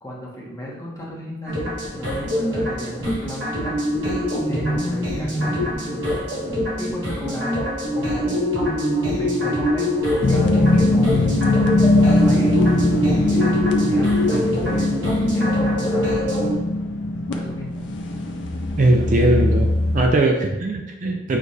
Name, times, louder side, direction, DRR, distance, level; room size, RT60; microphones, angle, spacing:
voice 1, 0.0-3.8 4.4-8.4 9.1-11.2 11.8-12.5 13.2-14.9 15.3-16.2 17.3-17.9, equal, 15° left, -4 dB, 0.8 m, -35 dB
sound 1, 1.5-16.5, equal, 65° right, 1.3 m, -24 dB
sound 2, 10.2-20.1, left 2 dB, 65° left, 0.5 m, -20 dB
voice 2, 18.8-21.4, right 2 dB, 40° right, 2 dB, 0.4 m, -20 dB
6.4 x 2.4 x 2.7 m, 1.1 s
head